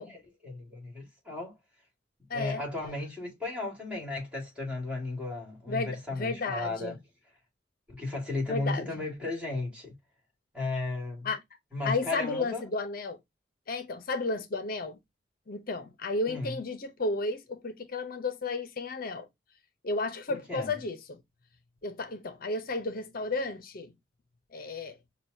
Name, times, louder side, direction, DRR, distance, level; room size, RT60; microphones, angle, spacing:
voice 1, 0.0-1.5 2.3-7.0 7.9-9.9 10.5-11.3 11.7-12.6 16.3-16.6 20.3-20.7, left 2 dB, 5° right, 2.0 m, -35 dB
voice 2, 2.3-2.6 5.7-7.0 8.5-9.0 11.2-11.4 11.8-13.2 13.7-15.0 15.5-19.2 19.8-21.2 21.8-23.9 24.5-25.0, left 3 dB, 50° left, 0.7 m, -33 dB
6.1 x 2.3 x 2.6 m
head